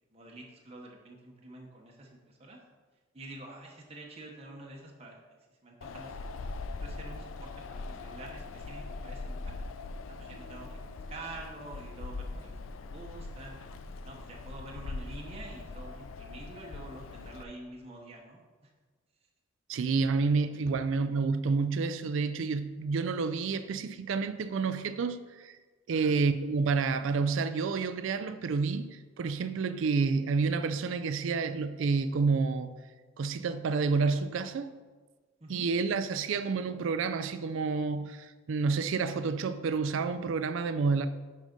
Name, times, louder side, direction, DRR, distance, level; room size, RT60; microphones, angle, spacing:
voice 1, 0.1-2.6 3.1-5.2 5.6-6.3 6.8-9.5 10.1-13.6 14.0-18.7 25.9-26.1 35.4-35.6, right 2 dB, 30° right, 0.9 m, -47 dB
Wind, 5.8-17.4, left 3 dB, 85° left, 0.4 m, -41 dB
voice 2, 19.7-25.6 25.9-32.7 33.2-34.7 35.5-41.1, right 4 dB, 75° right, 0.4 m, -29 dB
6.2 x 5.6 x 5.1 m
head